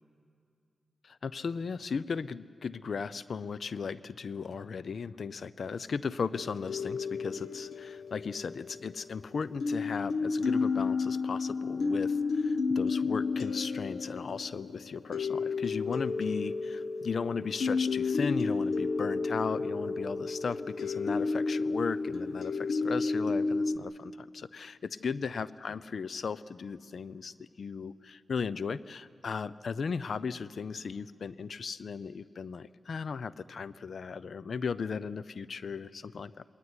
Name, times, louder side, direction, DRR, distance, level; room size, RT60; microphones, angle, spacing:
voice 1, 1.0-36.4, left 5 dB, 65° left, 18 dB, 0.5 m, -36 dB
sound 1, 6.3-9.2 9.6-23.8, left 4 dB, 80° left, 1.1 m, -31 dB
20.5 x 18.0 x 9.8 m, 2.4 s
cardioid pair, 65°, 0 cm